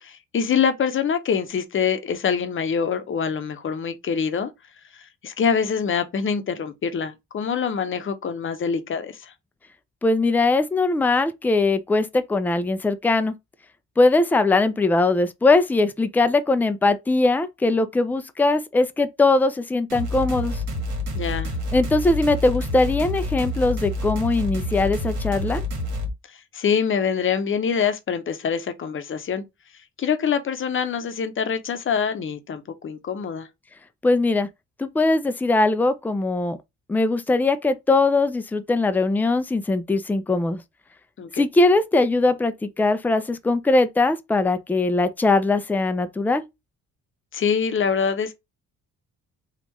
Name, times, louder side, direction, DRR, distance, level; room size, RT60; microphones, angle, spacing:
voice 1, 0.0-4.5 4.9-9.3 21.1-21.5 26.5-29.4 30.0-33.5 41.2-41.4 47.3-48.3, left 6 dB, 40° left, 0.8 m, -25 dB
voice 2, 10.0-13.3 14.0-20.6 21.7-25.6 34.0-34.5 34.8-36.6 36.9-40.6 41.4-46.4, left 2 dB, 5° left, 0.4 m, -21 dB
sound 1, 19.9-26.1, left 1 dB, 80° right, 1.5 m, -28 dB
3.5 x 2.5 x 3.0 m
cardioid pair, 90°, 30 cm